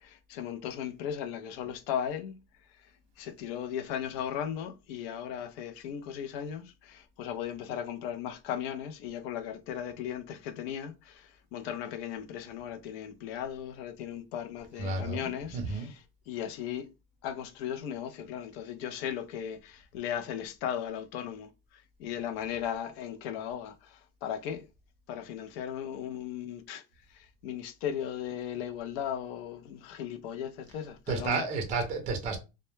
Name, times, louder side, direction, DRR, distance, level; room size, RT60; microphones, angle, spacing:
voice 1, 0.0-2.4 3.2-16.0 16.3-16.9 17.2-24.6 25.1-26.8 27.1-31.4, left 9 dB, 70° left, 0.5 m, -37 dB
voice 2, 14.8-15.9 31.1-32.4, right 3 dB, 25° right, 0.5 m, -32 dB
2.1 x 2.1 x 3.0 m
cardioid pair, 170°, 32 cm